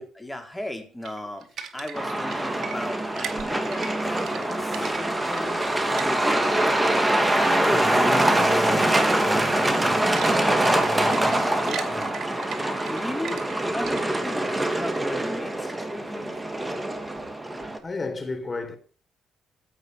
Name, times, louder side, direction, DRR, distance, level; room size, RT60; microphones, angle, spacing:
voice 1, 0.0-1.5 1.7-6.5 12.9-16.4, left 1 dB, 10° left, 3.9 m, -36 dB
sound 1, 1.0-6.6 6.8-8.0 8.4-8.6 8.9-9.1 9.5-14.3, right 8 dB, 65° right, 2.3 m, -39 dB
Truck, 1.9-17.8, right 1 dB, 10° right, 2.7 m, -24 dB
voice 2, 7.6-12.1 17.6-18.8, left 3 dB, 30° left, 3.8 m, -34 dB
16.0 x 5.6 x 9.2 m
cardioid pair, 90°, 0 cm